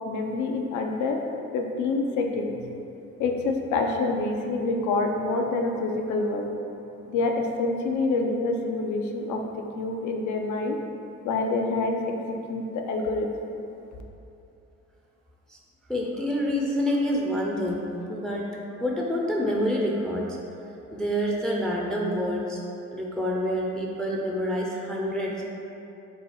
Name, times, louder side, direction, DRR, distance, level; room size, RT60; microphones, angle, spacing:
voice 1, 0.1-1.2 1.5-2.7 3.2-6.5 7.1-9.5 9.8-10.8 11.2-12.2 12.5-13.6, left 3 dB, 75° left, 3 dB, 0.5 m, -27 dB
voice 2, 15.9-18.5 18.8-20.4 20.9-22.6 22.9-25.4, equal, ahead, -2 dB, 0.4 m, -27 dB
4.0 x 2.3 x 4.0 m, 2.8 s
cardioid pair, 90°, 30 cm